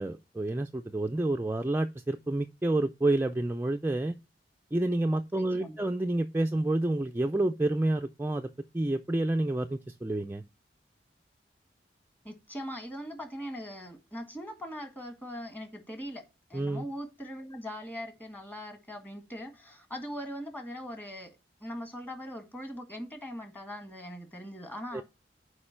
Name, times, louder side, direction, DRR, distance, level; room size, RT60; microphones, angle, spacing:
voice 1, 0.0-4.2 4.7-10.4 16.5-16.8 24.9-25.0, right 2 dB, 15° right, 0.4 m, -29 dB
voice 2, 5.3-5.8 12.2-16.2 16.5-21.3 21.6-25.0, equal, 10° left, 1.5 m, -41 dB
6.6 x 4.9 x 5.6 m
head